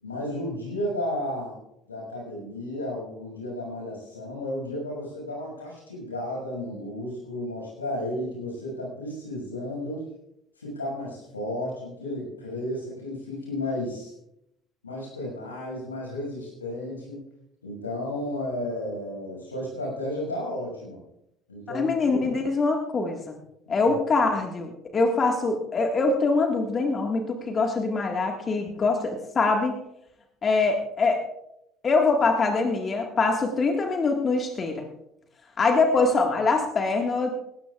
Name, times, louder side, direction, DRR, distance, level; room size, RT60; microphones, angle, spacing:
voice 1, 0.0-1.6 1.9-10.0 10.6-14.1 14.8-17.2 17.6-21.0 21.5-22.3 23.7-24.0, left 1 dB, 85° left, -2 dB, 6.2 m, -33 dB
voice 2, 21.7-23.4 23.7-29.8 30.4-31.2 31.8-34.9 35.6-37.3, left 3 dB, 35° left, 3 dB, 1.8 m, -24 dB
19.0 x 17.0 x 2.5 m, 0.81 s
figure-of-eight pair, 60°, 0 cm